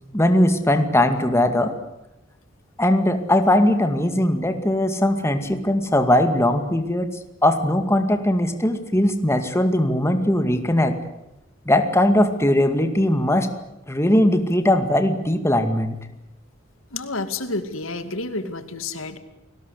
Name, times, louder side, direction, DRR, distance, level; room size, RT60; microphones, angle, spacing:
voice 1, 0.1-1.7 2.8-11.0 11.7-13.5 13.9-16.0, left 1 dB, 15° left, 7 dB, 2.2 m, -20 dB
voice 2, 16.9-19.2, left 3 dB, 85° left, 10 dB, 2.4 m, -29 dB
29.5 x 20.0 x 8.3 m, 0.91 s
head